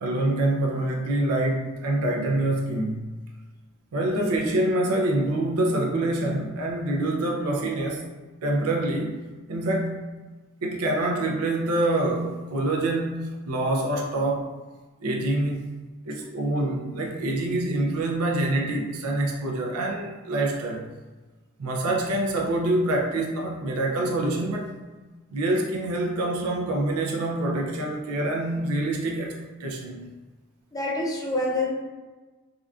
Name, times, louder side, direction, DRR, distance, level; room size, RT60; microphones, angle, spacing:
voice 1, 0.0-3.1 3.9-8.1 8.4-9.2 9.5-10.0 10.6-14.5 15.0-15.7 16.1-20.9 21.6-24.7 25.3-29.3 29.6-30.1, right 1 dB, 85° right, 0 dB, 0.4 m, -26 dB
voice 2, 30.7-31.7, left 2 dB, 15° left, -3 dB, 0.5 m, -26 dB
3.5 x 2.4 x 2.3 m, 1.3 s
head